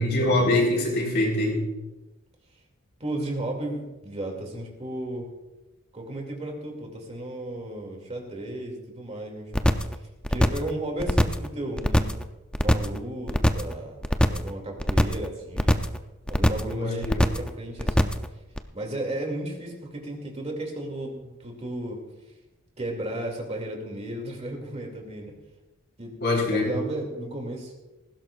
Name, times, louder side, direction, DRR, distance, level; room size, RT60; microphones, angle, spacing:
voice 1, 0.0-1.6 16.7-17.2 26.2-26.7, left 1 dB, 50° left, -1 dB, 4.1 m, -24 dB
voice 2, 3.0-5.3 5.9-9.7 10.3-12.1 12.6-15.8 16.3-18.1 18.7-22.0 22.8-25.3 26.0-27.7, right 1 dB, 30° right, 1 dB, 2.5 m, -34 dB
sound 1, 9.5-9.9 10.2-10.7 11.0-11.5 11.8-12.2 12.5-13.0 13.3-13.7 14.0-14.5 14.8-15.3 15.6-16.0 16.3-16.7 17.0-17.5 17.8-18.3 18.6-18.7, equal, 5° left, 0.5 m, -21 dB
19.0 x 16.0 x 2.5 m, 1.0 s
head